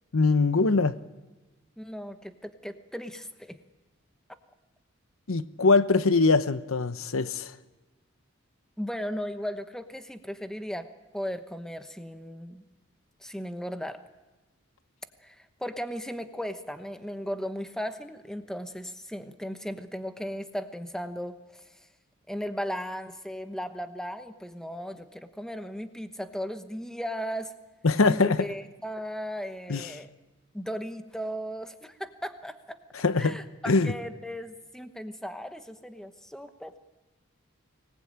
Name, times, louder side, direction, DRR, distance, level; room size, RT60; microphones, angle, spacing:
voice 1, 0.1-0.9 5.3-7.5 27.8-28.4 29.7-29.9 33.0-33.4 33.7-33.9, left 3 dB, 75° left, 0.9 m, -22 dB
voice 2, 1.8-3.6 8.8-12.6 13.2-14.0 15.2-21.6 22.3-27.5 28.0-30.1 30.5-32.8 33.2-36.8, equal, 5° left, 1.0 m, -36 dB
24.5 x 19.0 x 8.8 m
head